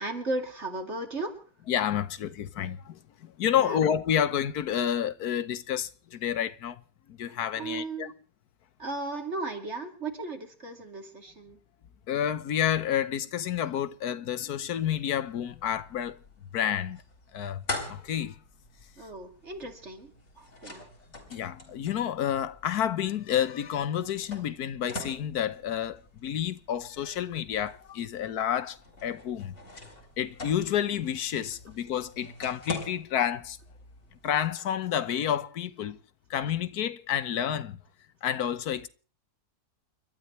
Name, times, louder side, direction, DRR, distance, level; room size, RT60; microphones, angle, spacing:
voice 1, 0.0-1.4 3.6-3.8 7.5-8.1 8.8-11.6 19.0-20.1 20.4-20.9, right 2 dB, 45° right, 2.8 m, -35 dB
voice 2, 1.7-3.0 3.4-6.8 7.1-8.1 12.1-16.2 16.5-17.0 17.3-17.6 17.9-18.3 21.3-29.5 30.2-33.6 34.2-36.0 36.3-37.8 38.2-38.9, left 9 dB, 80° left, 1.4 m, -29 dB
sound 1, 15.3-34.4, left 2 dB, 50° left, 4.1 m, -45 dB
29.5 x 12.5 x 3.2 m
omnidirectional pair, 1.6 m